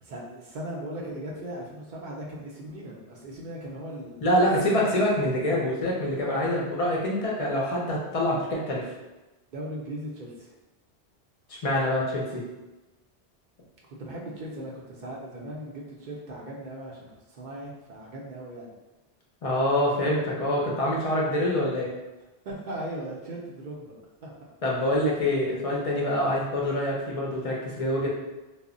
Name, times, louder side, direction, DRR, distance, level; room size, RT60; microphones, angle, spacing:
voice 1, 0.0-4.9 9.5-10.5 14.0-18.7 22.4-23.9 24.2-24.3, right 1 dB, 55° right, -3 dB, 0.6 m, -38 dB
voice 2, 4.2-8.9 11.5-12.4 19.4-21.9 24.6-28.1, left 1 dB, 45° left, -3 dB, 0.5 m, -25 dB
2.0 x 2.0 x 3.6 m, 1.1 s
omnidirectional pair, 1.1 m